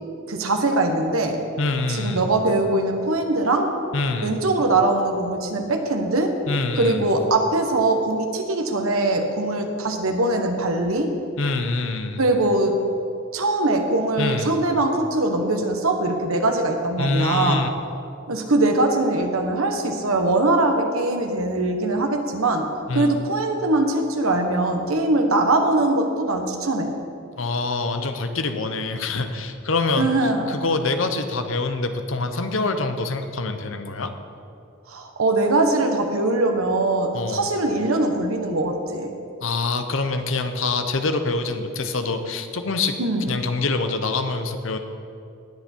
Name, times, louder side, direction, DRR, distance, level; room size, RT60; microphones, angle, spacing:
voice 1, 0.3-1.4 1.9-3.7 4.2-6.3 6.8-11.1 12.2-12.7 13.3-17.6 18.3-22.7 22.9-26.9 30.0-30.5 34.9-39.1 43.0-43.3, right 2 dB, 85° right, 4 dB, 1.2 m, -22 dB
voice 2, 1.6-2.2 3.9-4.4 6.5-7.1 11.4-12.2 14.2-14.6 17.0-17.7 22.9-23.1 27.4-30.1 30.5-34.1 37.1-37.5 39.4-42.9 43.3-44.8, left 3 dB, 70° left, 7 dB, 0.8 m, -25 dB
19.0 x 7.0 x 4.5 m, 2.6 s
head